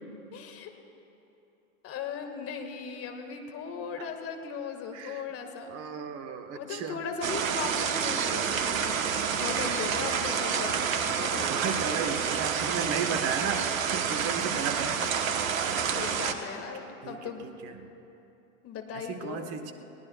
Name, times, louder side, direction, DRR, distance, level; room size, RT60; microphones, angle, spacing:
voice 1, 0.3-0.7 1.8-5.7 6.5-9.1 9.4-11.5 11.9-12.3 15.9-17.5 18.6-19.5, left 6 dB, 35° left, 4 dB, 2.0 m, -38 dB
voice 2, 4.9-5.2 5.7-7.1 9.6-10.0 11.5-16.1 17.0-17.9 18.9-19.7, right 6 dB, 35° right, 7 dB, 1.3 m, -35 dB
sound 1, 7.2-16.3, right 7 dB, 70° right, 1.3 m, -29 dB
29.5 x 19.5 x 2.4 m, 2.9 s
hypercardioid pair, 95°, 42 cm